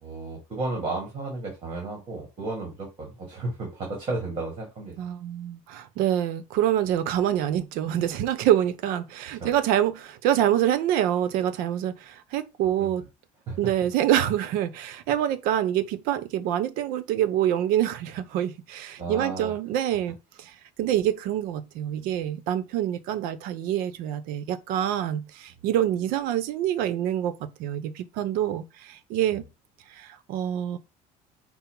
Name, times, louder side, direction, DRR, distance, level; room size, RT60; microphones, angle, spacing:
voice 1, 0.0-4.9 9.4-9.5 12.8-12.9 13.5-13.6 19.0-19.5, right 3 dB, 30° right, 1.6 m, -33 dB
voice 2, 5.0-13.0 13.6-20.5 20.8-29.4 29.9-30.8, right 11 dB, 70° right, 0.7 m, -26 dB
5.4 x 2.0 x 4.5 m
cardioid pair, 160°, 15 cm